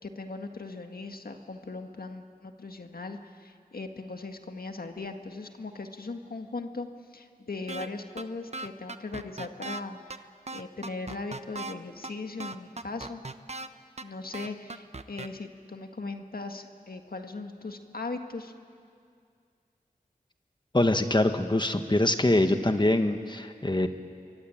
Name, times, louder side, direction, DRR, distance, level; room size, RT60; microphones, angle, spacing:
voice 1, 0.0-13.2 14.0-18.5, left 3 dB, 75° left, 5 dB, 1.8 m, -39 dB
sound 1, 7.7-7.9 8.2-8.3 8.5-9.8 10.1-10.2 10.5-11.7 12.0-12.1 12.4-13.7 14.0-14.1 14.3-15.3, right 3 dB, 45° right, 1.0 m, -37 dB
voice 2, 20.7-23.9, left 1 dB, 30° left, 7 dB, 1.6 m, -24 dB
27.5 x 23.0 x 8.9 m, 2.3 s
wide cardioid pair, 55°, 15 cm